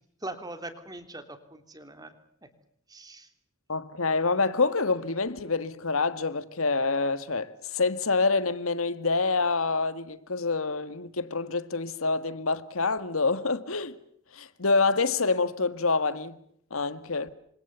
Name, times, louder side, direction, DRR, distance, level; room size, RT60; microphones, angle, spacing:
voice 1, 0.2-2.2 2.4-2.5 2.9-3.3, right 2 dB, 20° right, 3.1 m, -41 dB
voice 2, 3.7-13.9 14.3-16.4 16.7-17.3, left 4 dB, 80° left, 1.7 m, -27 dB
28.5 x 25.5 x 6.9 m
head